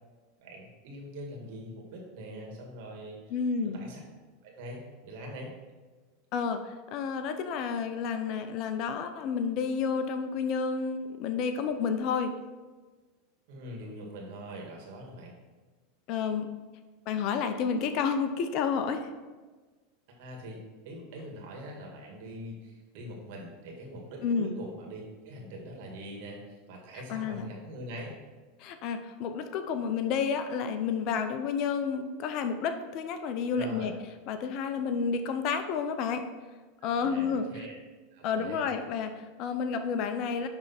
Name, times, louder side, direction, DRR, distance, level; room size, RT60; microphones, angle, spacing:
voice 1, 0.4-3.3 3.7-4.0 4.4-5.5 13.5-15.3 20.2-20.6 20.8-28.1 33.5-33.9 36.8-37.8 38.1-38.7, equal, 60° right, 0 dB, 2.0 m, -43 dB
voice 2, 3.3-3.8 6.3-12.4 16.1-16.5 17.1-19.1 24.2-24.6 27.1-27.5 28.6-33.9 34.3-36.3 36.8-37.7 38.2-40.5, left 6 dB, 50° left, 8 dB, 0.7 m, -30 dB
10.5 x 3.6 x 4.3 m, 1.3 s
hypercardioid pair, 90°, 0 cm